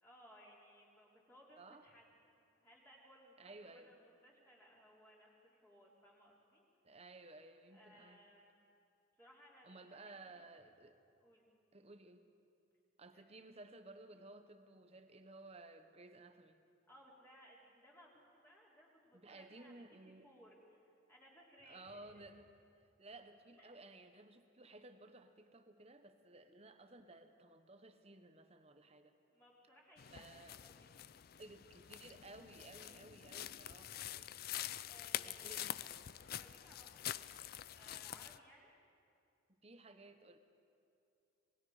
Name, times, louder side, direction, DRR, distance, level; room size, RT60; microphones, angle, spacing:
voice 1, 0.0-2.1 2.4-3.5 3.8-6.6 7.7-8.5 9.2-10.4 11.2-11.5 13.1-13.2 16.9-22.2 23.6-23.7 29.3-30.9 33.5-33.9 34.9-35.6 36.3-37.3 37.7-38.7, equal, 10° left, -4 dB, 3.3 m, -63 dB
voice 2, 1.6-1.9 3.4-3.9 6.8-8.2 9.6-11.0 11.7-12.2 13.0-16.6 19.1-20.3 21.7-22.5 23.0-29.1 30.1-30.6 31.4-34.3 35.1-36.1 39.5-40.4, right 2 dB, 30° right, 8 dB, 1.0 m, -57 dB
sound 1, 30.0-38.4, left 12 dB, 50° left, 0.4 m, -46 dB
27.0 x 20.0 x 4.9 m, 2.6 s
head